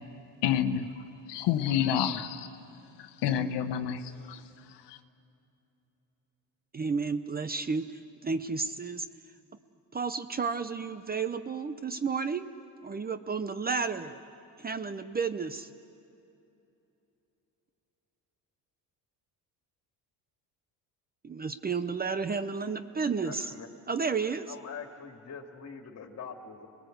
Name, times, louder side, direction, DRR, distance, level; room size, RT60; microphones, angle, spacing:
voice 1, 0.4-0.9 1.3-2.5 3.0-4.0 4.3-4.4 4.9-5.0, left 9 dB, 85° left, 8 dB, 1.2 m, -28 dB
voice 2, 6.7-9.1 9.9-12.5 12.8-14.2 14.6-15.7 21.2-23.5 23.9-24.5, right 5 dB, 20° right, 11 dB, 0.7 m, -32 dB
voice 3, 23.3-23.7 24.5-26.7, left 6 dB, 40° left, 4 dB, 2.4 m, -43 dB
28.0 x 21.0 x 8.0 m, 2.8 s
cardioid pair, 125°, 41 cm